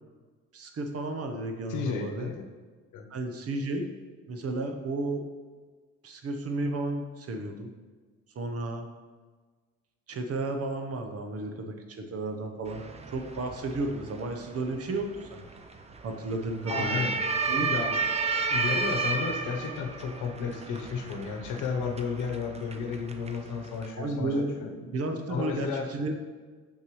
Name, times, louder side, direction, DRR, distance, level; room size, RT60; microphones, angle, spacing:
voice 1, 0.5-2.3 3.1-3.9 4.3-5.2 6.0-7.7 8.4-8.9 10.1-12.8 13.1-15.4 16.0-17.1 17.5-18.0 24.0-26.2, right 2 dB, 50° right, 5 dB, 0.9 m, -33 dB
voice 2, 1.7-2.4 2.9-3.0 16.7-17.2 17.7-18.0 18.5-24.7 25.3-25.9, left 5 dB, 80° left, 4 dB, 0.9 m, -33 dB
sound 1, 12.7-23.9, right 4 dB, 20° right, 0.5 m, -33 dB
6.7 x 5.8 x 3.1 m, 1.4 s
cardioid pair, 90°, 30 cm